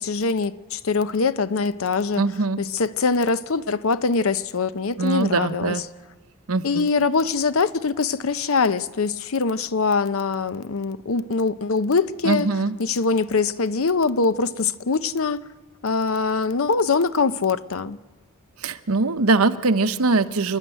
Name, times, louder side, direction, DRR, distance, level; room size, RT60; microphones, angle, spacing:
voice 1, 0.0-2.2 2.6-5.8 6.6-12.5 12.8-15.4 15.8-18.0, left 4 dB, 70° left, 0.7 m, -23 dB
voice 2, 2.2-2.6 5.0-5.8 6.5-6.9 12.2-12.7 18.6-20.6, right 3 dB, 85° right, 0.9 m, -22 dB
28.0 x 11.0 x 9.0 m
head